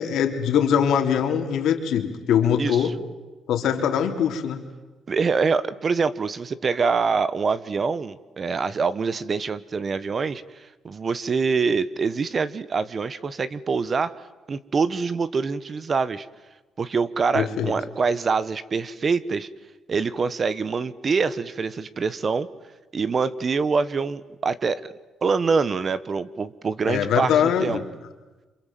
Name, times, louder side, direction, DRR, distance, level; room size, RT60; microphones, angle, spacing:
voice 1, 0.0-3.0 3.5-4.6 17.3-17.7 26.9-27.8, left 8 dB, 80° left, 5 dB, 3.3 m, -22 dB
voice 2, 2.6-2.9 5.1-14.1 14.5-16.3 16.8-19.5 19.9-22.5 22.9-24.9 25.2-27.8, right 5 dB, 40° right, 16 dB, 1.2 m, -25 dB
28.0 x 27.0 x 7.7 m, 1.2 s
cardioid pair, 90°, 0 cm